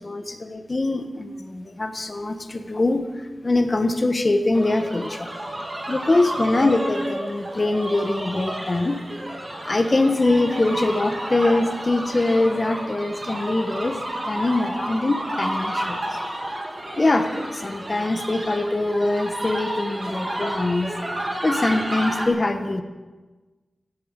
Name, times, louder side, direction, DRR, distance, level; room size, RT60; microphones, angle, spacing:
voice 1, 0.0-3.0 3.4-5.3 5.9-9.0 9.6-14.0 14.3-16.0 17.0-20.9 21.4-22.8, left 2 dB, 35° left, 7 dB, 1.3 m, -23 dB
sound 1, 4.5-22.3, right 1 dB, 35° right, 2.4 m, -31 dB
17.0 x 8.7 x 7.5 m, 1.3 s
wide cardioid pair, 110°, 0 cm